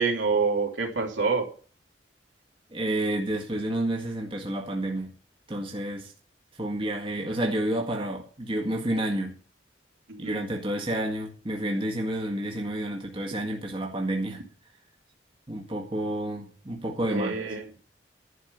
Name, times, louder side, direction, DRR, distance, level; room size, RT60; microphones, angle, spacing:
voice 1, 0.0-1.4 10.1-10.4 17.1-17.6, right 4 dB, 80° right, 3.4 m, -26 dB
voice 2, 2.7-5.1 5.5-6.1 6.6-9.4 10.2-14.4 15.5-17.4, right 1 dB, 25° right, 1.8 m, -30 dB
11.5 x 6.0 x 8.5 m
head